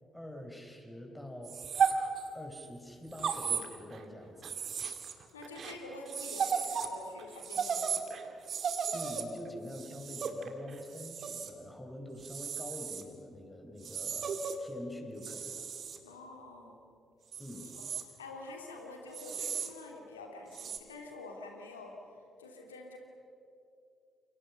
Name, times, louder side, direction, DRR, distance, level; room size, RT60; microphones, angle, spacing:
voice 1, 0.1-1.6 2.3-4.6 8.9-15.8 17.4-17.7, left 1 dB, 10° left, 3 dB, 5.7 m, -46 dB
sound 1, 1.4-2.7 3.1-4.1 4.4-6.9 7.2-11.5 12.2-13.0 13.8-14.6 15.2-16.0 17.3-18.0 19.1-19.7 20.5-20.8, right 6 dB, 50° right, 2.3 m, -35 dB
voice 2, 5.3-8.3 16.0-16.9 17.7-17.8 18.2-21.9 22.4-23.0, left 2 dB, 80° left, 2 dB, 3.0 m, -47 dB
29.5 x 28.5 x 5.7 m, 2.6 s
figure-of-eight pair, 40°, 0 cm